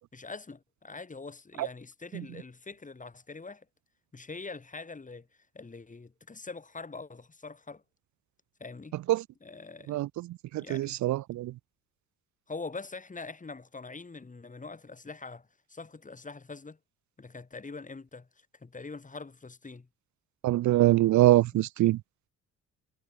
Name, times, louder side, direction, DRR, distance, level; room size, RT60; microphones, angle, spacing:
voice 1, 0.1-3.7 4.1-5.3 5.5-7.8 8.6-9.0 9.4-10.1 10.5-10.9 12.5-16.8 17.2-19.9, left 3 dB, 25° left, 7.0 m, -43 dB
voice 2, 10.5-11.5 20.4-22.0, right 16 dB, 70° right, 0.6 m, -23 dB
cardioid pair, 90°, 30 cm